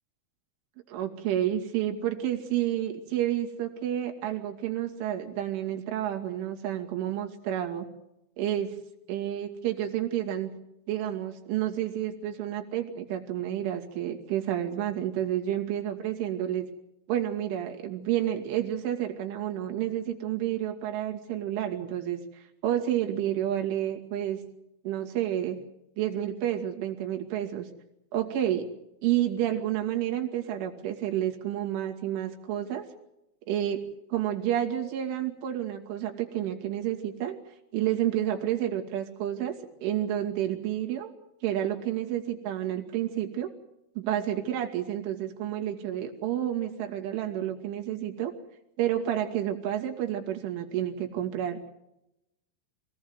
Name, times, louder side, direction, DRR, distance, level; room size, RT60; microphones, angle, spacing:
voice 1, 0.9-7.9 8.4-8.7 9.1-10.5 10.9-16.7 17.1-24.4 24.8-25.6 26.0-27.7 28.1-28.7 29.0-32.9 33.5-33.8 34.1-37.4 37.7-39.6 39.8-41.1 41.4-43.5 44.0-48.3 48.8-51.6, right 11 dB, 80° right, 3 dB, 4.9 m, -30 dB
25.5 x 17.5 x 8.1 m, 0.87 s
omnidirectional pair, 5.5 m